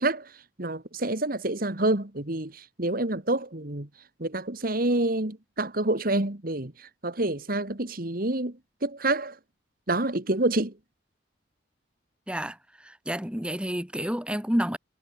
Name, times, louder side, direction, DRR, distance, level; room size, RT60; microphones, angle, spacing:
voice 1, 0.0-3.9 4.2-8.5 8.8-9.4 9.9-10.7, right 2 dB, 50° right, 2.2 m, -28 dB
voice 2, 12.3-14.8, equal, 5° right, 2.9 m, -30 dB
head